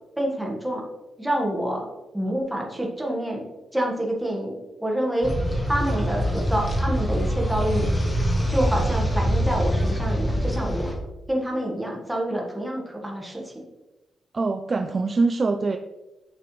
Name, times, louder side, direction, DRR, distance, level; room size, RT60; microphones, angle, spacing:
voice 1, 0.2-0.8 1.2-1.9 2.1-3.4 3.7-5.3 5.7-7.9 8.5-10.9 11.3-13.6, right 1 dB, 5° right, -1 dB, 1.6 m, -27 dB
sound 1, 5.2-11.0, equal, 15° left, 1.2 m, -24 dB
voice 2, 14.3-15.8, right 3 dB, 25° right, 7 dB, 0.4 m, -23 dB
8.8 x 6.8 x 3.2 m, 1.0 s
wide cardioid pair, 160°, 0 cm